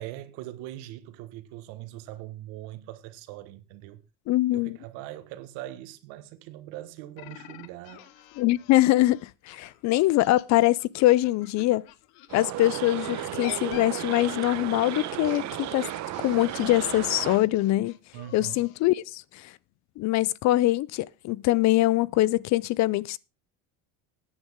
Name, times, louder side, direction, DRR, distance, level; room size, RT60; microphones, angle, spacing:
voice 1, 0.0-4.0 4.5-8.1 18.1-18.6, right 14 dB, 80° right, 1.5 m, -41 dB
voice 2, 4.3-4.8 8.4-11.8 12.3-15.9 16.2-17.9 18.3-19.5 20.0-23.2, left 17 dB, 50° left, 0.5 m, -23 dB
sound 1, 7.2-12.4 13.0-18.8, left 14 dB, 75° left, 1.1 m, -48 dB
sound 2, 12.3-17.4, right 14 dB, 50° right, 1.0 m, -34 dB
15.0 x 9.6 x 3.6 m
cardioid pair, 130°, 36 cm